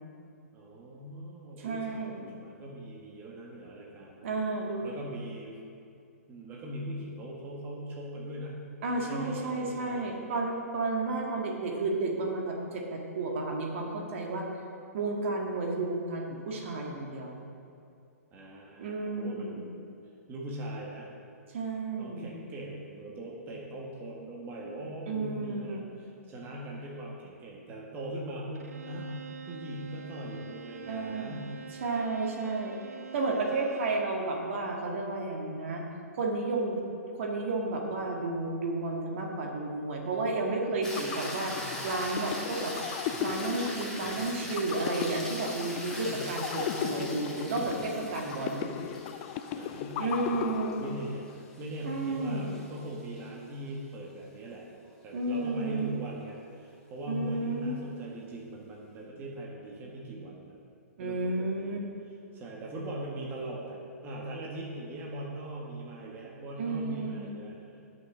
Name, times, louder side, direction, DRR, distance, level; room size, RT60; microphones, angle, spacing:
voice 1, 0.5-4.3 4.8-5.6 6.3-8.6 8.9-10.3 18.3-19.8 20.3-21.1 22.0-31.5 41.4-41.9 46.0-46.2 49.5-50.4 50.8-51.3 51.6-54.7 55.0-60.5 61.0-61.8 62.3-67.6, right 1 dB, 25° right, -3 dB, 1.6 m, -40 dB
voice 2, 1.6-2.4 4.2-4.9 8.8-14.5 14.9-17.4 18.8-19.7 21.5-22.3 25.1-25.8 30.9-31.4 31.8-32.8 33.1-35.8 36.1-36.8 37.1-42.7 43.2-48.7 50.0-50.8 51.8-52.6 55.1-55.9 57.1-57.7 61.0-61.8 66.6-67.3, right 3 dB, 50° right, 0 dB, 1.9 m, -32 dB
Bowed string instrument, 28.5-34.2, right 5 dB, 70° right, 0.8 m, -45 dB
sound 1, 40.7-51.5, left 10 dB, 35° left, 0.4 m, -37 dB
sound 2, 40.8-53.2 57.7-57.8, left 1 dB, 5° left, 2.8 m, -42 dB
11.5 x 6.3 x 6.2 m, 2.4 s
figure-of-eight pair, 120°, 8 cm